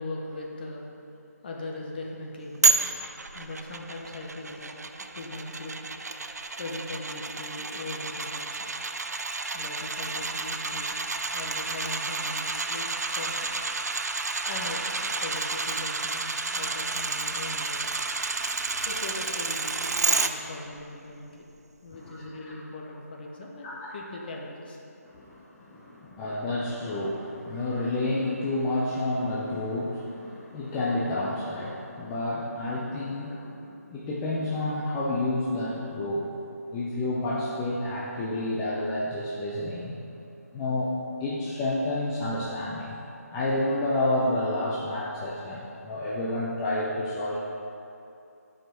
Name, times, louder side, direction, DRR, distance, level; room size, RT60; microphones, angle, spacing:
voice 1, 0.0-4.7 5.1-6.1 6.5-8.7 9.5-11.0 11.3-13.5 14.2-18.0 18.8-21.5 21.8-24.8 25.1-25.2, left 2 dB, 35° left, -1 dB, 1.0 m, -40 dB
sound 1, 2.6-20.3 20.7-20.8, right 3 dB, 75° right, 0.5 m, -30 dB
voice 2, 25.0-36.3 36.7-40.0 40.5-40.9 41.2-43.0 43.3-47.4, left 1 dB, 10° left, -7 dB, 0.5 m, -30 dB
9.0 x 5.0 x 4.4 m, 2.7 s
figure-of-eight pair, 155°, 9 cm